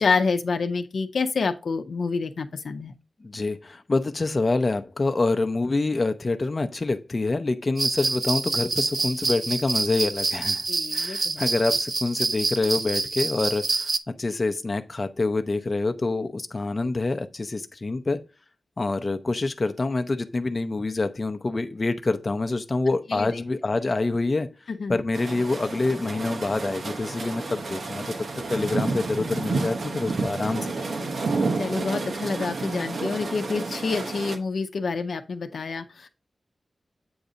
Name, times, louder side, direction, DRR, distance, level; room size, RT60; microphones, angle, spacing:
voice 1, 0.0-2.9 10.7-11.4 23.1-23.4 24.7-25.0 30.9-36.1, left 4 dB, 85° left, 0.6 m, -28 dB
voice 2, 3.2-10.6 10.9-13.9 14.2-18.2 18.8-24.5 24.9-30.9, left 3 dB, 35° left, 0.5 m, -26 dB
sound 1, 7.8-14.0, right 3 dB, 50° right, 0.4 m, -27 dB
sound 2, 25.1-34.4, right 3 dB, 80° right, 0.9 m, -30 dB
7.8 x 2.7 x 4.9 m
wide cardioid pair, 135°, 0 cm